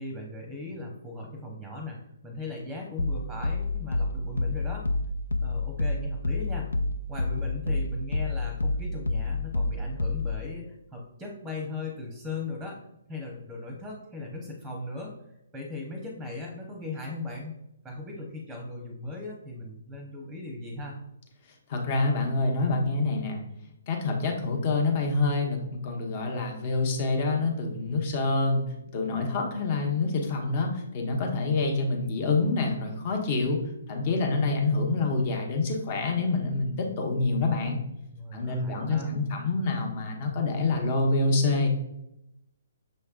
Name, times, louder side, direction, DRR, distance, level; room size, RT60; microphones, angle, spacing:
voice 1, 0.0-4.9 5.4-6.7 7.1-12.8 13.1-15.1 15.5-17.6 17.8-21.0 38.1-39.1, left 2 dB, 5° right, 1 dB, 0.8 m, -38 dB
sound 1, 3.0-10.5, left 2 dB, 80° left, 0.3 m, -29 dB
voice 2, 21.7-23.4 23.9-28.6 28.9-33.6 33.9-37.8 38.3-41.9, left 3 dB, 40° left, 2 dB, 1.0 m, -27 dB
6.4 x 3.3 x 2.4 m, 0.83 s
figure-of-eight pair, 135°, 0 cm